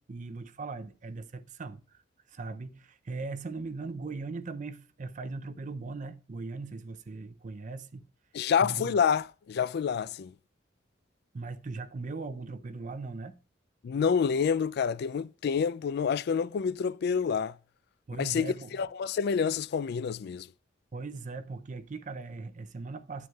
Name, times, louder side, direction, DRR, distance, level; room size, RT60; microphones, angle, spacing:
voice 1, 0.0-2.0 2.3-8.0 8.6-9.0 11.3-13.4 18.1-18.8 20.9-23.3, right 3 dB, 40° right, 0.5 m, -39 dB
voice 2, 8.3-10.3 13.8-17.6 18.2-20.5, left 6 dB, 55° left, 0.3 m, -28 dB
9.3 x 9.1 x 2.3 m
head